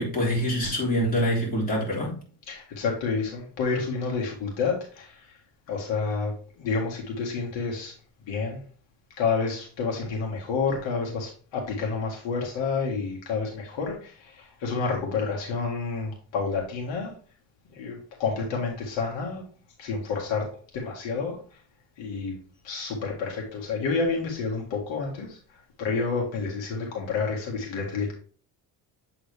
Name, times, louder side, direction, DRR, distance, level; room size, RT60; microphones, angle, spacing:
voice 1, 0.0-2.2, equal, 20° left, -4 dB, 3.3 m, -25 dB
voice 2, 2.5-5.4 5.7-7.9 8.3-8.6 9.2-17.1 17.7-19.4 19.8-21.6 22.0-22.4 22.6-25.4 25.8-28.1, left 4 dB, 75° left, -1 dB, 1.9 m, -29 dB
7.8 x 3.8 x 3.4 m, 0.42 s
cardioid pair, 90°, 45 cm